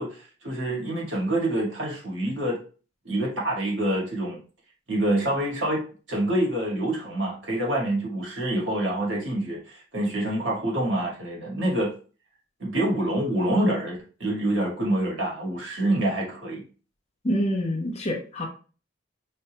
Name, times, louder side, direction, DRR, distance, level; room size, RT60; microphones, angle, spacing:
voice 1, 0.0-2.6 3.0-4.4 4.9-5.8 6.1-11.9 12.6-16.6, right 1 dB, 70° right, 1.8 m, -26 dB
voice 2, 17.2-18.5, equal, 35° left, 0.7 m, -26 dB
5.3 x 2.9 x 2.2 m
head